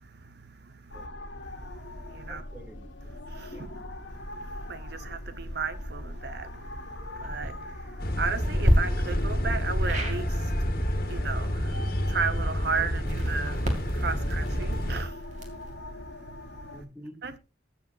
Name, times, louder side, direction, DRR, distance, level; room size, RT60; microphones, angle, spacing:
voice 1, 0.6-1.1 2.1-2.4 3.3-3.7 4.4-6.6 7.1-10.5 11.1-13.7 13.9-15.8 16.4-16.6 17.2-17.4, right 5 dB, 55° right, 0.8 m, -35 dB
sound 1, 0.9-16.8, left 1 dB, 70° left, 1.7 m, -42 dB
voice 2, 2.3-3.1 3.5-3.8 16.7-17.4, equal, 10° right, 2.8 m, -47 dB
sound 2, 7.1-7.5 8.5-8.7 9.9-10.2 12.9-15.7, equal, 40° right, 2.7 m, -29 dB
sound 3, 8.0-15.0, equal, 50° left, 1.8 m, -28 dB
21.5 x 7.4 x 2.7 m
head